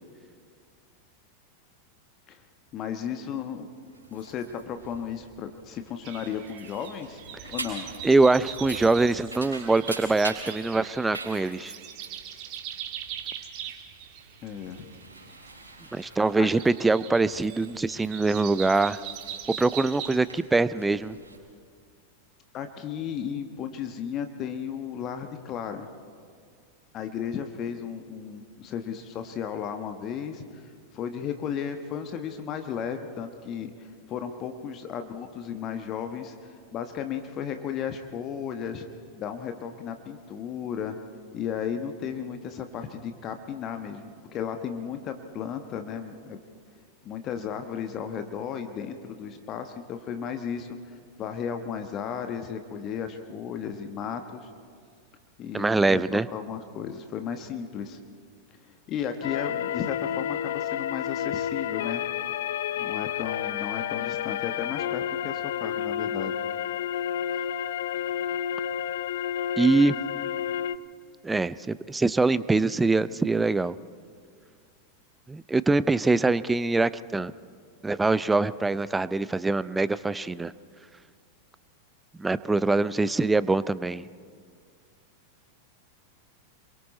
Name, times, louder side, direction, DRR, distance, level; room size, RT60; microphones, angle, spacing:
voice 1, 2.7-3.7 4.1-7.2 7.5-7.9 14.4-14.9 16.0-16.5 22.5-25.9 26.9-38.9 39.2-40.9 41.3-46.4 47.0-54.5 55.4-58.0 58.6-62.0 62.8-66.3, left 8 dB, 35° left, 7 dB, 1.2 m, -34 dB
sound 1, 3.8-21.4, right 2 dB, 80° right, 3.9 m, -44 dB
sound 2, 6.0-20.2, right 10 dB, 40° right, 1.9 m, -41 dB
voice 2, 8.0-11.7 15.9-19.0 19.6-21.2 55.5-56.3 69.6-70.0 71.2-73.8 75.3-77.3 77.8-80.5 82.2-84.1, right 3 dB, 10° right, 18 dB, 0.5 m, -23 dB
sound 3, 59.2-70.8, left 10 dB, 55° left, 0.6 m, -30 dB
27.5 x 23.0 x 4.2 m, 2.1 s
figure-of-eight pair, 90°, 0 cm